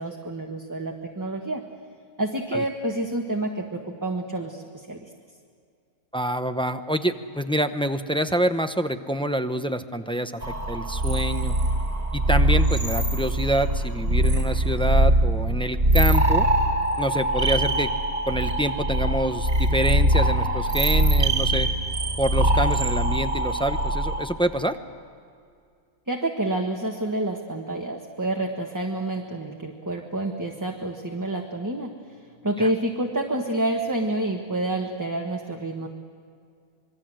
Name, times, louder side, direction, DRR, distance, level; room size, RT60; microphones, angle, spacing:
voice 1, 0.0-1.6 2.2-5.1 26.1-31.9 32.4-35.9, right 1 dB, 15° right, 1 dB, 1.3 m, -28 dB
voice 2, 6.1-10.4 10.7-11.6 12.1-16.5 17.0-17.9 18.3-21.7 22.2-24.8 32.6-32.7, equal, 5° left, 8 dB, 0.4 m, -26 dB
sound 1, 10.4-24.3, right 1 dB, 40° right, 2.2 m, -22 dB
27.0 x 22.0 x 7.6 m, 2.3 s
omnidirectional pair, 1.5 m